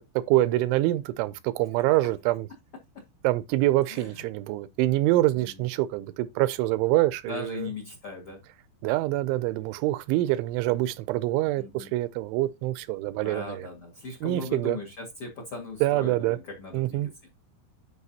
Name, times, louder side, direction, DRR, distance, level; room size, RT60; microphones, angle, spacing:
voice 1, 0.3-2.5 3.2-7.7 8.8-13.6 14.2-14.8 15.8-16.4 16.7-17.1, right 16 dB, 85° right, 2.8 m, -25 dB
voice 2, 3.8-4.3 5.3-5.7 7.3-8.4 11.5-11.9 13.2-17.3, left 3 dB, 55° left, 1.6 m, -39 dB
12.5 x 4.7 x 2.8 m
omnidirectional pair, 5.7 m